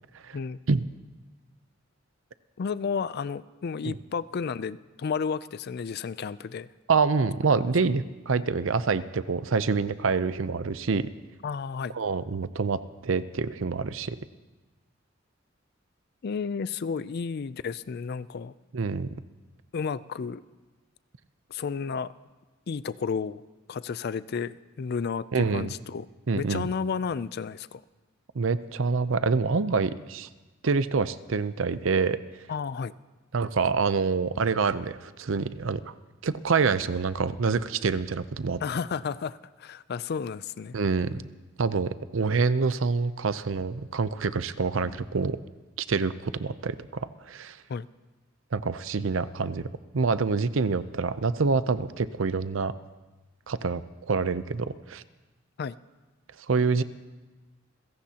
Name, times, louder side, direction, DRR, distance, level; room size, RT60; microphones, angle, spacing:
voice 1, 2.6-6.7 11.4-12.0 16.2-18.5 19.7-20.4 21.5-22.1 22.7-23.4 23.7-26.1 26.4-27.8 32.5-32.9 38.6-40.7 44.8-45.0 47.7-47.9 55.6-55.7, left 5 dB, 55° left, 17 dB, 0.4 m, -32 dB
voice 2, 6.9-11.1 11.9-14.2 18.7-19.1 25.3-25.7 26.3-26.7 28.3-30.3 30.6-32.2 33.3-35.9 36.2-38.6 40.7-41.2 41.6-45.4 45.8-47.6 48.5-49.7 49.9-52.7 53.5-55.0 56.5-56.8, right 4 dB, 80° right, 14 dB, 0.6 m, -26 dB
28.0 x 16.5 x 2.9 m, 1.2 s
head